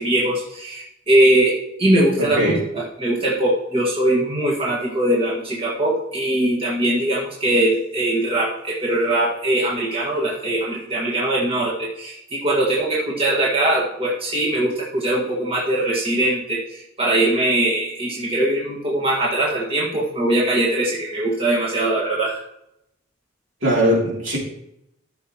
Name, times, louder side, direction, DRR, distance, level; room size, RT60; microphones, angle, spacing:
voice 1, 0.0-22.4, right 1 dB, 30° right, -5 dB, 1.9 m, -21 dB
voice 2, 2.2-2.6 23.6-24.4, equal, 65° right, -4 dB, 3.2 m, -20 dB
14.0 x 6.6 x 3.0 m, 0.80 s
head